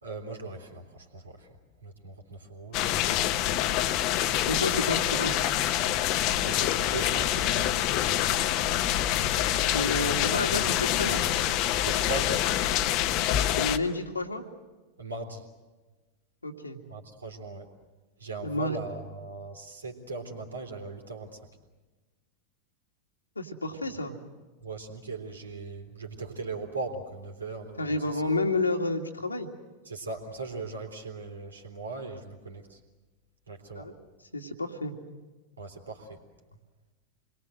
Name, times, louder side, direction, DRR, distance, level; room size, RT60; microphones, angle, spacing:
voice 1, 0.0-1.5 1.8-3.5 6.4-7.8 9.5-11.0 11.8-12.5 15.0-15.5 16.9-17.7 18.2-21.4 24.6-28.2 29.9-32.8 33.5-33.9 35.6-36.2, right 3 dB, 75° right, 3 dB, 3.5 m, -39 dB
sound 1, 2.7-13.8, left 12 dB, 40° left, 1.1 m, -26 dB
voice 2, 4.5-5.4 9.7-11.2 13.6-14.4 16.4-16.8 18.4-18.8 23.4-24.2 27.8-29.5 33.8-33.9 34.3-34.9, left 2 dB, 80° left, 3 dB, 2.1 m, -30 dB
28.0 x 22.0 x 7.8 m, 1.2 s
figure-of-eight pair, 90°, 0 cm